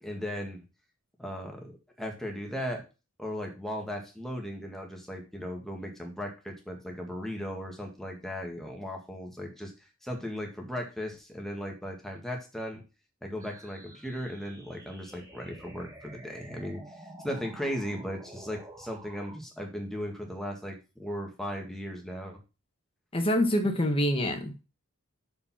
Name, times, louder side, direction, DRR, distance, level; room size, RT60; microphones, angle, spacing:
voice 1, 0.0-0.6 1.2-2.8 3.2-9.7 10.0-12.8 13.2-22.4, equal, ahead, 1 dB, 1.8 m, -37 dB
sound 1, 13.4-19.4, right 1 dB, 15° right, 1.4 m, -49 dB
voice 2, 23.1-24.6, equal, 25° left, 4 dB, 1.5 m, -26 dB
6.6 x 5.3 x 5.7 m, 0.29 s
head